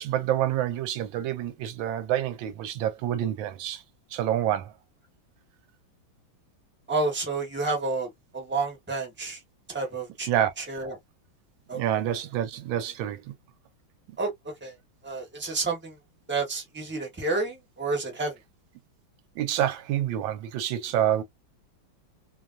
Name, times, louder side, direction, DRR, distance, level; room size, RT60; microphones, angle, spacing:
voice 1, 0.0-3.8 4.1-4.7 10.3-10.7 11.7-13.3 14.1-14.2 19.4-21.2, right 11 dB, 80° right, 1.3 m, -27 dB
voice 2, 6.9-8.1 8.3-9.4 9.7-10.3 10.7-11.0 11.7-11.8 14.2-14.7 15.0-15.9 16.3-18.3, right 3 dB, 10° right, 0.5 m, -30 dB
3.2 x 2.2 x 2.4 m
omnidirectional pair, 2.2 m